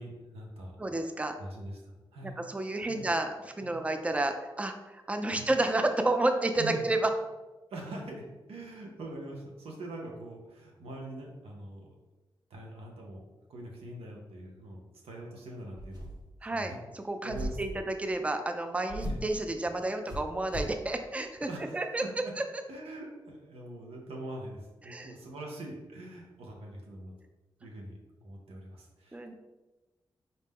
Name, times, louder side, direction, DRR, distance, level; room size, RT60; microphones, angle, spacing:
voice 1, 0.0-0.7 1.4-1.8 2.1-2.4 2.9-3.1 3.6-3.8 5.3-5.5 6.6-6.8 7.7-11.9 12.5-13.2 13.5-16.1 16.5-16.8 17.2-17.8 19.0-19.2 21.5-22.3 22.7-27.1 27.6-29.3, right 1 dB, 90° right, -1 dB, 0.7 m, -43 dB
voice 2, 0.8-1.3 2.2-7.1 16.4-21.5 21.7-22.0 22.4-22.5 24.8-25.1 29.1-29.3, right 2 dB, 15° right, 6 dB, 0.4 m, -31 dB
sound 1, 15.8-16.4 17.3-17.8 18.9-19.3 20.1-20.8, equal, 50° right, 1.1 m, -37 dB
4.0 x 2.1 x 3.4 m, 1.1 s
cardioid pair, 45°, 10 cm